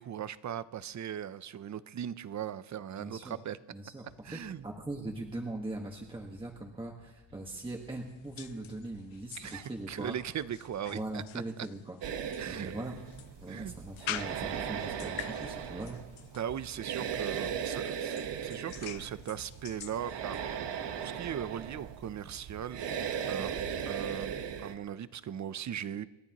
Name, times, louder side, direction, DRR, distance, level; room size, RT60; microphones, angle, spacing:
voice 1, 0.0-3.6 4.2-4.7 9.4-11.2 12.4-12.7 13.5-13.8 16.4-20.4 21.0-22.8 23.3-23.5 23.9-24.4 24.6-26.1, right 9 dB, 40° right, 16 dB, 0.6 m, -38 dB
voice 2, 3.0-3.4 3.7-10.1 10.9-12.0 12.4-13.0 13.4-16.0, right 2 dB, 10° right, 0 dB, 1.4 m, -41 dB
sound 1, 4.1-11.2, left 6 dB, 45° left, 1.3 m, -61 dB
sound 2, 7.8-21.1, left 12 dB, 85° left, 0.9 m, -47 dB
sound 3, 12.0-24.7, right 8 dB, 65° right, 1.2 m, -38 dB
28.5 x 13.5 x 3.0 m, 1.1 s
cardioid pair, 140°, 46 cm